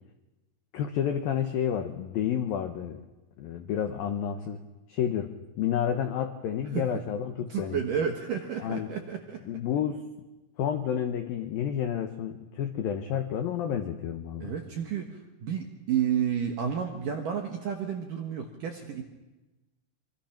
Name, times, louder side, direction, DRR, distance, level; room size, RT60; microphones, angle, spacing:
voice 1, 0.7-3.0 3.4-4.6 4.9-7.8 8.6-8.9 9.5-10.0 10.6-14.5, left 9 dB, 85° left, 6 dB, 2.0 m, -30 dB
voice 2, 7.5-9.4 14.4-19.0, right 8 dB, 65° right, 3 dB, 2.1 m, -31 dB
25.0 x 24.5 x 5.9 m, 1.1 s
omnidirectional pair, 5.7 m